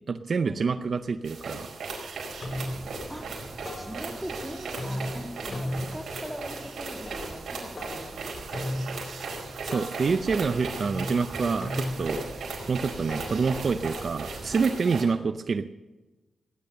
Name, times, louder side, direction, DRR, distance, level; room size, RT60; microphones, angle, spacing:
voice 1, 0.1-1.7 9.6-12.2 12.7-15.7, right 5 dB, 55° right, 10 dB, 0.6 m, -27 dB
sound 1, 0.9-1.0 1.3-1.9 2.2-4.4 4.7-14.8, left 1 dB, 45° left, 4.2 m, -38 dB
sound 2, 1.3-15.0, right 3 dB, 85° right, 4.7 m, -37 dB
sound 3, 2.4-14.6, right 2 dB, 35° right, 2.3 m, -47 dB
voice 2, 3.1-3.4 3.7-8.3 8.7-8.8, equal, 5° right, 2 dB, 2.6 m, -41 dB
18.0 x 10.5 x 6.7 m, 1.1 s
cardioid pair, 95°, 0 cm